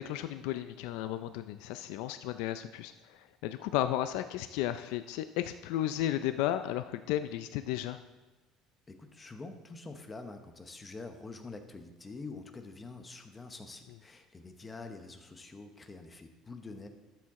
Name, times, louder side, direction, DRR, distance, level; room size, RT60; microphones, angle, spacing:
voice 1, 0.0-8.0, left 12 dB, 80° left, 11 dB, 0.4 m, -34 dB
voice 2, 8.9-16.9, left 3 dB, 15° left, 7 dB, 0.9 m, -46 dB
12.5 x 7.6 x 3.7 m, 1.2 s
cardioid pair, 145°, 0 cm